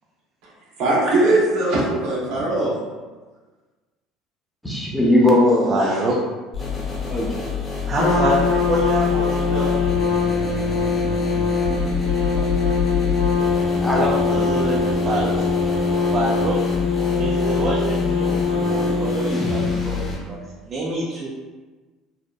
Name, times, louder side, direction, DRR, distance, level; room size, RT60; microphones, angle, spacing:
voice 1, 0.8-2.7, right 2 dB, 70° right, -5 dB, 0.8 m, -20 dB
voice 2, 4.6-5.7 7.1-7.4 13.7-14.5, left 1 dB, 5° left, -4 dB, 0.6 m, -19 dB
voice 3, 5.7-6.1 7.9-8.4 8.7-9.8 12.3-12.4 14.1-15.5 16.1-16.7 17.2-20.0 20.3-21.3, right 1 dB, 45° right, -4 dB, 0.4 m, -26 dB
sound 1, 6.5-20.1, left 4 dB, 30° left, 0.8 m, -27 dB
Trumpet, 8.0-20.1, left 4 dB, 85° left, 0.5 m, -22 dB
2.7 x 2.0 x 2.2 m, 1.3 s
supercardioid pair, 95°, 0 cm